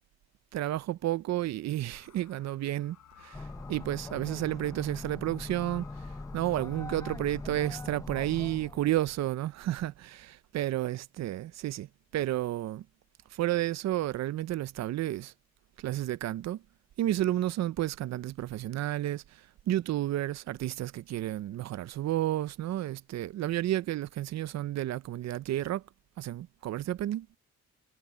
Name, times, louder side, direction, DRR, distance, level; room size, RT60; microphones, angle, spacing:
voice 1, 0.5-5.9 6.3-11.9 12.1-12.9 13.3-15.3 15.8-16.6 17.0-25.8 26.2-27.3, right 14 dB, 60° right, 0.6 m, -31 dB
sound 1, 1.9-7.9, left 12 dB, 75° left, 7.7 m, -58 dB
sound 2, 3.3-9.2, left 3 dB, 10° left, 0.7 m, -42 dB
cardioid pair, 90°, 30 cm